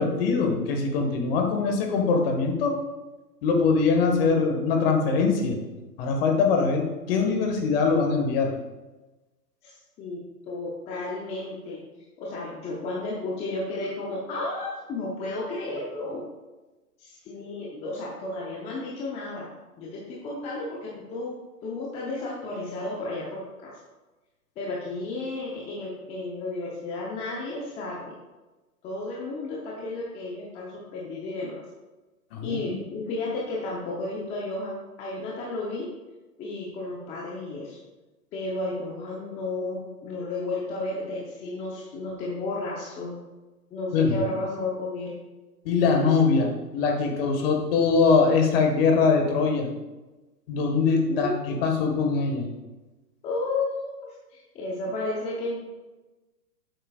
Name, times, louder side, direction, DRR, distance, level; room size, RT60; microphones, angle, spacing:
voice 1, 0.0-2.8 3.4-5.6 6.0-8.5 32.3-32.7 43.9-44.2 45.6-49.7 50.5-51.3 51.6-52.5, left 4 dB, 35° left, 3 dB, 1.6 m, -22 dB
voice 2, 9.6-11.8 12.2-16.2 17.0-19.5 19.8-21.4 21.6-23.7 24.6-28.1 28.8-31.6 32.4-35.9 36.4-37.8 38.3-43.2 43.7-45.1 51.1-51.3 53.2-54.0 54.3-55.6, left 2 dB, 15° left, -4 dB, 0.8 m, -33 dB
10.0 x 7.9 x 2.4 m, 1.1 s
hypercardioid pair, 135°, 49 cm